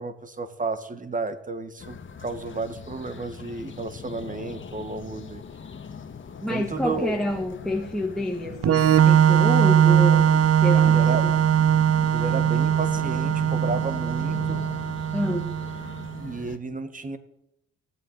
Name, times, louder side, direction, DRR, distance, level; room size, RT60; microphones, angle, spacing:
voice 1, 0.0-5.4 6.5-7.1 10.8-11.2 12.1-14.6 16.1-17.2, right 3 dB, 25° right, 10 dB, 1.8 m, -32 dB
sound 1, 1.8-16.6, left 6 dB, 40° left, 1.6 m, -40 dB
voice 2, 6.4-11.3 15.1-15.5, left 1 dB, ahead, 4 dB, 1.5 m, -28 dB
Organ, 8.6-16.2, right 9 dB, 50° right, 0.7 m, -20 dB
16.5 x 8.9 x 9.5 m, 0.81 s
cardioid pair, 90°, 30 cm